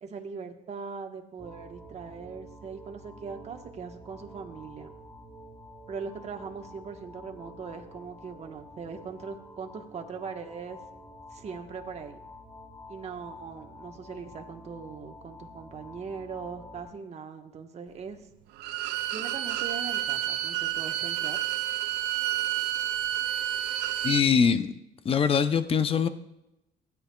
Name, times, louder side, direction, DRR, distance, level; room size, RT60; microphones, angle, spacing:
voice 1, 0.0-4.9 5.9-10.8 11.3-12.2 12.9-18.2 19.1-21.4, right 5 dB, 40° right, 1.2 m, -40 dB
sound 1, 1.4-16.9, equal, 5° left, 1.4 m, -48 dB
Bowed string instrument, 18.6-24.2, right 13 dB, 85° right, 0.5 m, -30 dB
voice 2, 24.0-24.7 25.0-26.1, left 6 dB, 35° left, 0.7 m, -22 dB
16.0 x 9.4 x 2.3 m
cardioid pair, 110°, 17 cm